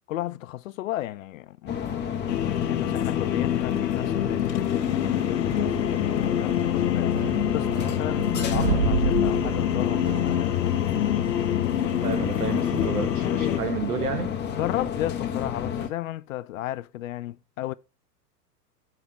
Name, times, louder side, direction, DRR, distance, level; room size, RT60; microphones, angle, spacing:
voice 1, 0.1-2.1 2.7-7.2 7.5-11.1 14.5-17.7, left 14 dB, 55° left, 0.5 m, -34 dB
sound 1, 1.7-15.9, left 8 dB, 20° left, 1.2 m, -30 dB
sound 2, 2.3-13.6, left 11 dB, 80° left, 0.9 m, -26 dB
sound 3, 5.5-10.5, right 12 dB, 40° right, 0.5 m, -31 dB
voice 2, 12.0-14.4, right 6 dB, 65° right, 2.0 m, -31 dB
7.1 x 5.8 x 4.3 m
hypercardioid pair, 110°, 49 cm